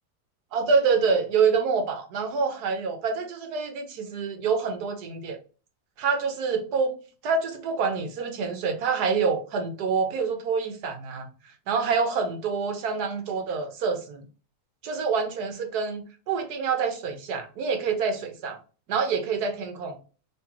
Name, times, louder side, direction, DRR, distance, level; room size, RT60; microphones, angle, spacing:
voice 1, 0.5-5.4 6.0-6.9 7.2-11.3 11.7-14.2 14.8-18.6 18.9-20.0, right 5 dB, 75° right, 1.4 m, -26 dB
3.6 x 3.4 x 2.9 m
omnidirectional pair, 1.7 m